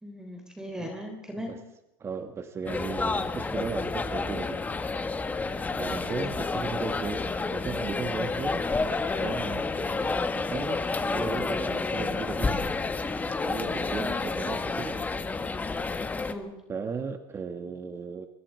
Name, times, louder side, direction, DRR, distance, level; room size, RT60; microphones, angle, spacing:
voice 1, 0.0-1.6 5.8-6.0 16.3-16.6, equal, 5° right, 4 dB, 3.7 m, -38 dB
voice 2, 2.0-4.6 5.4-8.7 9.2-12.7 13.4-15.0 16.7-18.3, right 5 dB, 20° right, 8 dB, 1.7 m, -36 dB
sound 1, 2.7-16.3, left 3 dB, 15° left, 1.6 m, -30 dB
26.0 x 23.0 x 4.7 m, 0.93 s
supercardioid pair, 125°, 12 cm